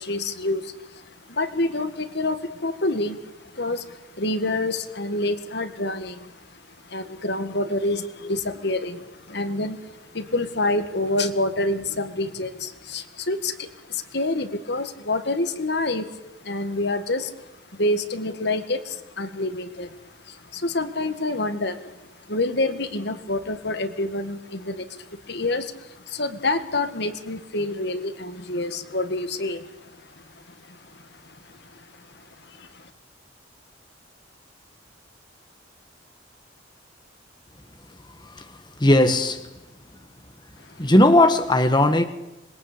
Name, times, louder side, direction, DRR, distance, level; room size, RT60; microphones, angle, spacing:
voice 1, 0.0-16.1 16.4-32.9 40.7-40.9, left 2 dB, 60° left, 10 dB, 2.0 m, -28 dB
voice 2, 38.1-39.5 40.8-42.1, left 1 dB, 25° left, 8 dB, 1.6 m, -18 dB
26.0 x 22.0 x 8.7 m, 1.0 s
head